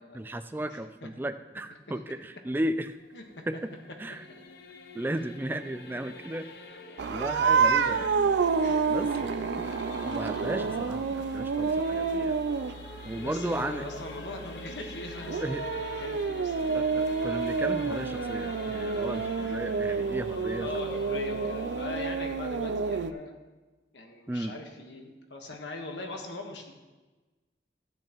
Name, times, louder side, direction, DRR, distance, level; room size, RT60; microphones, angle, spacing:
voice 1, 0.1-3.0 3.5-3.7 4.0-4.2 4.9-6.5 7.0-8.4 8.6-9.3 9.6-9.7 10.0-12.4 13.0-13.8 15.4-15.6 15.9-16.0 16.7-20.8 24.3-24.6, right 1 dB, 10° right, 10 dB, 0.3 m, -35 dB
voice 2, 0.7-1.1 3.1-3.2 8.6-9.3 13.2-17.3 19.5-19.6 19.9-20.1 20.6-23.4 23.9-26.7, left 2 dB, 85° left, 3 dB, 1.3 m, -41 dB
Singing / Musical instrument, 2.8-22.2, left 3 dB, 65° left, 0.7 m, -44 dB
sound 1, 7.0-23.1, right 5 dB, 85° right, 0.4 m, -29 dB
12.0 x 9.0 x 3.0 m, 1.2 s
head